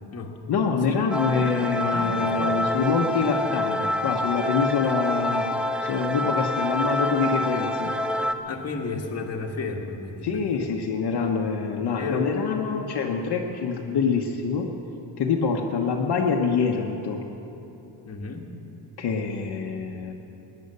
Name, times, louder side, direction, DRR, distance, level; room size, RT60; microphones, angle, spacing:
voice 1, 0.5-5.5 5.8-7.9 10.2-14.7 15.2-17.2 19.0-20.1, left 5 dB, 60° left, 0 dB, 1.1 m, -25 dB
sound 1, 1.1-8.3, left 1 dB, ahead, 0.4 m, -27 dB
voice 2, 1.8-2.6 8.5-10.6 12.0-12.8 18.1-18.5, left 3 dB, 35° left, 1 dB, 1.5 m, -32 dB
18.0 x 10.5 x 6.8 m, 2.9 s
cardioid pair, 145°, 44 cm